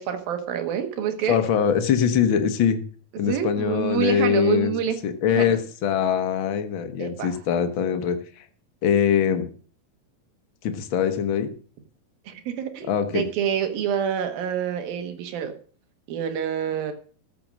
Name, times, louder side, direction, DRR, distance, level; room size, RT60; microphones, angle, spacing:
voice 1, 0.0-1.4 3.3-5.0 5.3-5.5 7.0-7.3 12.3-15.5 16.1-16.9, right 8 dB, 85° right, 6 dB, 3.3 m, -27 dB
voice 2, 1.2-2.8 3.2-4.7 5.0-8.5 8.8-9.5 10.6-11.5 12.8-13.2, left 7 dB, 80° left, 8 dB, 1.1 m, -22 dB
14.0 x 6.8 x 7.5 m, 0.43 s
omnidirectional pair, 4.0 m